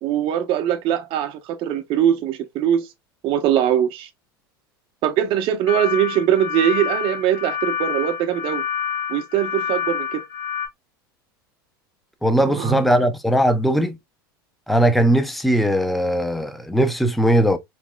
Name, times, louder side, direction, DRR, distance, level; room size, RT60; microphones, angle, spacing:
voice 1, 0.0-2.9 3.2-4.1 5.0-8.6 9.1-10.2 12.4-12.9, right 10 dB, 45° right, 0.7 m, -21 dB
sound 1, 5.7-10.7, left 8 dB, 75° left, 1.4 m, -27 dB
voice 2, 12.2-13.9 14.7-17.6, right 1 dB, ahead, 0.5 m, -19 dB
3.5 x 3.1 x 2.2 m
hypercardioid pair, 95°, 12 cm